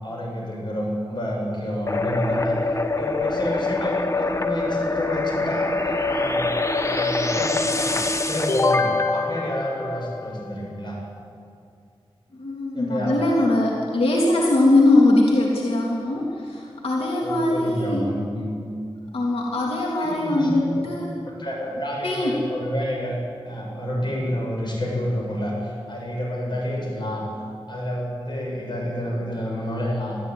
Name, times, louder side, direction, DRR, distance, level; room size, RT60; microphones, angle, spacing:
voice 1, 0.0-2.6 3.0-6.5 6.9-8.0 8.3-11.0 12.7-13.2 17.2-18.5 20.0-20.8 21.2-23.2 23.4-27.3 27.7-30.2, equal, 55° left, -1 dB, 7.1 m, -29 dB
sound 1, 1.9-10.5, left 3 dB, 30° left, 1.3 m, -24 dB
voice 2, 12.3-18.1 19.1-21.2 22.0-22.4, left 2 dB, 85° left, -2 dB, 3.1 m, -21 dB
21.5 x 13.5 x 9.3 m, 2.3 s
wide cardioid pair, 95°, 10 cm